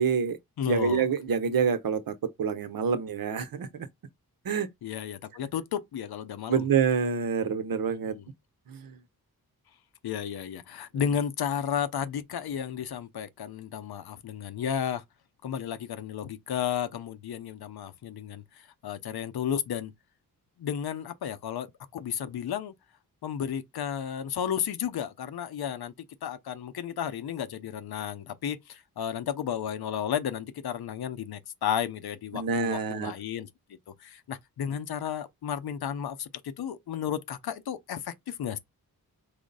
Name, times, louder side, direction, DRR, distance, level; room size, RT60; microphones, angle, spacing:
voice 1, 0.0-0.4 0.6-3.9 4.4-4.7 6.5-8.2 8.7-9.0 32.3-33.1, right 6 dB, 65° right, 0.8 m, -27 dB
voice 2, 0.6-1.0 4.8-6.6 8.1-8.2 10.0-15.0 15.4-18.4 18.8-19.9 20.6-21.7 21.9-22.7 23.2-25.9 26.2-33.5 34.0-38.6, left 9 dB, 85° left, 0.7 m, -33 dB
4.9 x 2.1 x 3.9 m
cardioid pair, 75°, 37 cm